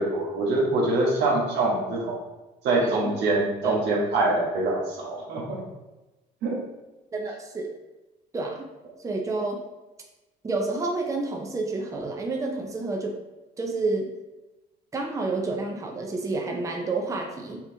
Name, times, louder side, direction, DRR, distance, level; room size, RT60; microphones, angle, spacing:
voice 1, 0.0-2.2 2.6-5.6 6.4-6.6, right 2 dB, 85° right, -2 dB, 1.3 m, -24 dB
voice 2, 2.8-3.1 3.6-4.0 7.1-7.7 8.3-8.7 9.0-9.6 10.4-13.2 13.6-14.1 14.9-17.6, right 3 dB, 20° right, 1 dB, 0.6 m, -29 dB
5.7 x 3.0 x 2.8 m, 1.1 s
cardioid pair, 110°, 17 cm